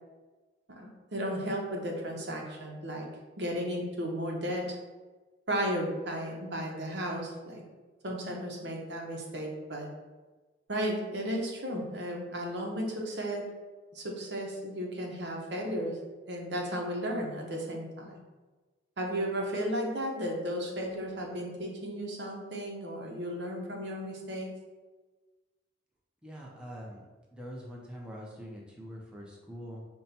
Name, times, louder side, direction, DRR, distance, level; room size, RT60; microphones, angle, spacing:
voice 1, 0.7-3.1 3.4-4.8 5.5-7.6 8.0-9.9 10.7-13.5 13.9-16.0 16.3-18.2 19.0-24.5, equal, 70° right, 0 dB, 0.9 m, -34 dB
voice 2, 26.2-27.1 27.3-29.8, equal, 5° right, -4 dB, 0.6 m, -44 dB
5.4 x 2.2 x 4.2 m, 1.3 s
head